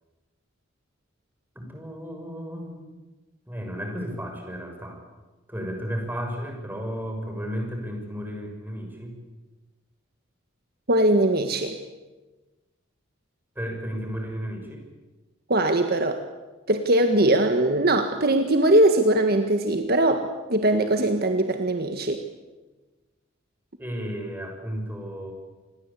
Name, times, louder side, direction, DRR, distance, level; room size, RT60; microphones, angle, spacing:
voice 1, 1.5-2.9 3.5-5.0 5.5-9.2 13.5-14.8 23.8-25.3, equal, 10° right, 2 dB, 6.3 m, -33 dB
voice 2, 10.9-11.8 15.5-16.2 16.7-22.2, right 1 dB, 50° right, 6 dB, 1.7 m, -21 dB
28.0 x 21.0 x 8.5 m, 1.2 s
head